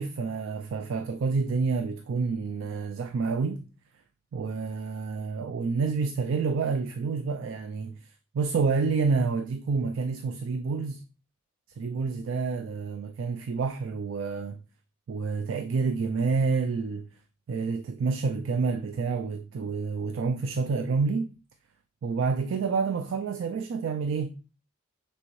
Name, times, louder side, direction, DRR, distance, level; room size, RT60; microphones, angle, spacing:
voice 1, 0.0-3.7 4.3-8.1 8.3-11.0 11.8-14.6 15.1-17.1 17.5-21.3 22.0-24.3, right 4 dB, 65° right, 0.3 m, -28 dB
6.1 x 2.1 x 3.1 m
head